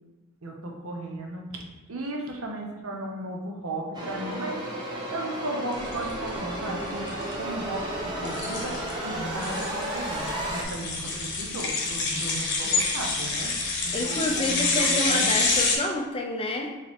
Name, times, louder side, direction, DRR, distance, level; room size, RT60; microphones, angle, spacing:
voice 1, 0.4-4.6 5.1-7.1 7.4-15.5, right 1 dB, 65° right, 1 dB, 0.7 m, -35 dB
sound 1, 3.9-10.6, right 1 dB, 20° right, 0.6 m, -33 dB
sound 2, 5.8-15.8, left 3 dB, 50° left, 0.9 m, -28 dB
voice 2, 13.9-16.8, left 1 dB, 25° left, 3 dB, 0.4 m, -28 dB
4.6 x 3.1 x 3.4 m, 1.2 s
head